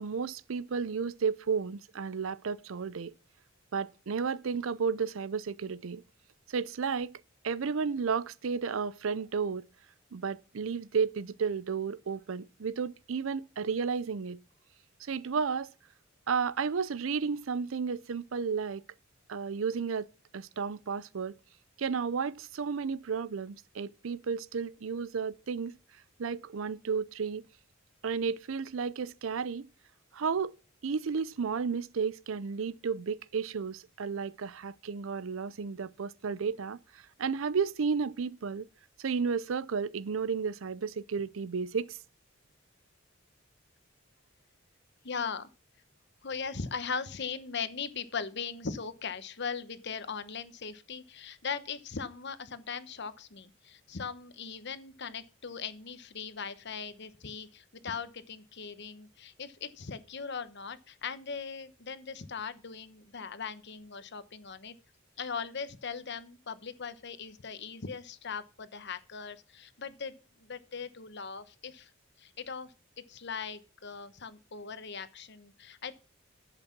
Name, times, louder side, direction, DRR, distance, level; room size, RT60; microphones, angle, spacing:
voice 1, 0.0-3.1 3.7-6.0 6.5-7.1 7.4-9.6 10.1-14.4 15.1-15.7 16.3-18.8 19.3-20.1 20.3-21.3 21.8-25.8 26.2-27.4 28.0-29.7 30.1-30.5 30.8-36.8 37.2-38.7 39.0-42.0, right 5 dB, 75° right, 0.5 m, -32 dB
voice 2, 45.0-45.5 46.2-64.8 65.2-71.9 72.2-72.7 73.1-76.0, left 5 dB, 55° left, 1.0 m, -39 dB
11.0 x 8.0 x 5.9 m
head